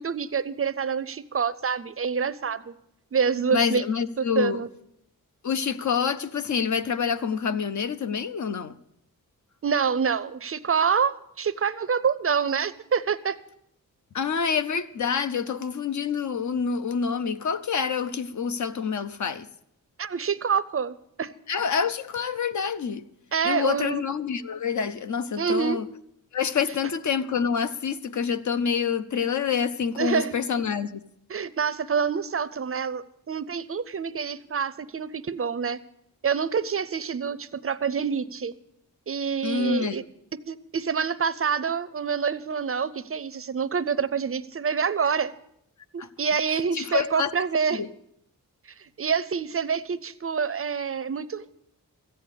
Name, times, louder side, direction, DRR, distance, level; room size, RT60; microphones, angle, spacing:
voice 1, 0.0-2.7 3.1-3.8 4.2-4.7 9.6-13.4 20.0-21.3 23.3-24.0 25.4-25.8 30.0-30.3 31.3-35.8 36.2-38.5 39.1-40.0 40.5-45.3 45.9-47.8 48.8-51.5, right 6 dB, 40° right, 0.5 m, -27 dB
voice 2, 3.5-4.6 5.4-8.8 14.1-19.5 21.5-23.0 23.4-25.9 26.3-31.0 39.4-40.1 46.0-46.1 46.7-47.3 47.7-47.9, left 6 dB, 55° left, 0.6 m, -27 dB
14.5 x 8.5 x 8.3 m
wide cardioid pair, 145°, 34 cm